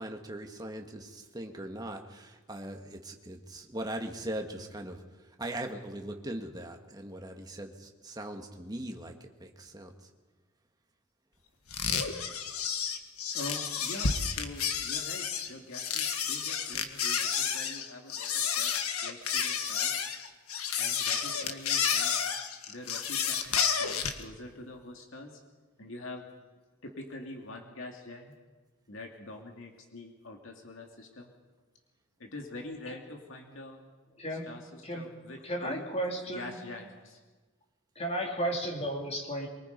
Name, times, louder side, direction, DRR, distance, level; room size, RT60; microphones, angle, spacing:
voice 1, 0.0-5.0 5.4-9.9, right 1 dB, 15° right, 3 dB, 1.8 m, -40 dB
sound 1, 11.7-24.2, left 7 dB, 85° left, 1.7 m, -31 dB
voice 2, 13.3-20.1 20.8-22.2 22.7-25.4 25.8-26.3 26.8-28.3 28.9-31.3 32.2-33.8 34.3-35.9 36.3-37.2, left 2 dB, 60° left, 2 dB, 2.5 m, -45 dB
voice 3, 35.4-36.6 38.0-39.5, right 1 dB, 30° left, 1 dB, 3.3 m, -33 dB
24.0 x 23.5 x 5.4 m, 1.3 s
head